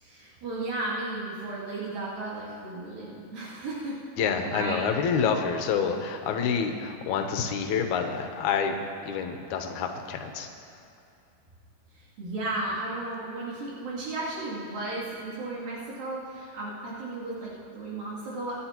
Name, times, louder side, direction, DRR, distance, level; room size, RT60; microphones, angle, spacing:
voice 1, 0.0-4.0 4.5-4.8 12.2-18.6, right 2 dB, 80° right, -9 dB, 4.6 m, -34 dB
voice 2, 4.2-8.8 9.1-10.5, left 6 dB, 70° left, 4 dB, 2.1 m, -28 dB
26.5 x 10.5 x 3.0 m, 2.7 s
omnidirectional pair, 4.0 m